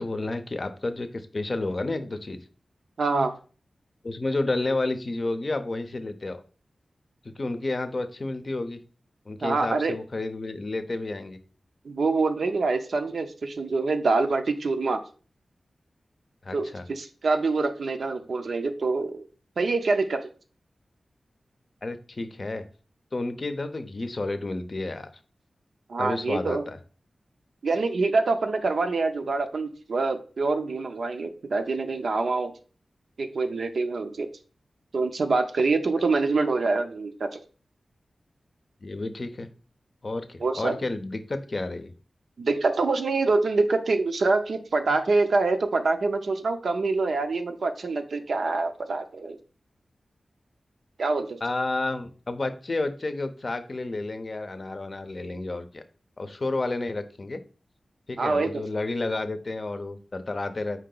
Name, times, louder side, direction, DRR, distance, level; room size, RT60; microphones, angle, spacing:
voice 1, 0.0-2.4 4.0-6.4 7.4-8.8 9.3-11.4 16.4-16.9 21.8-22.6 23.1-25.1 26.0-26.8 38.8-39.5 40.0-41.9 51.4-55.8 56.2-57.4 58.1-60.8, left 2 dB, 50° left, 9 dB, 0.6 m, -31 dB
voice 2, 3.0-3.3 9.4-9.9 11.8-15.0 16.5-19.2 19.6-20.3 25.9-26.6 27.6-32.5 33.2-34.3 34.9-37.4 40.4-40.7 42.4-49.4 51.0-51.4 58.2-58.6, right 3 dB, 80° right, 6 dB, 0.5 m, -25 dB
4.6 x 2.8 x 3.8 m, 0.38 s
cardioid pair, 55°, 0 cm